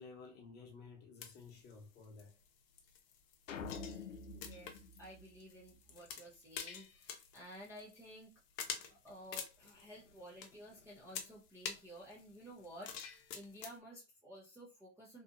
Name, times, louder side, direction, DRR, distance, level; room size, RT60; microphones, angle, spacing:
voice 1, 0.0-2.4 6.1-6.2 9.0-9.1, left 4 dB, 25° left, 0.9 m, -54 dB
sound 1, 1.2-13.8, left 7 dB, 50° left, 0.7 m, -49 dB
sound 2, 3.5-5.9, left 4 dB, 85° left, 0.5 m, -47 dB
voice 2, 4.3-8.4 8.7-15.2, equal, 5° right, 0.5 m, -54 dB
2.8 x 2.3 x 2.5 m
hypercardioid pair, 120°, 37 cm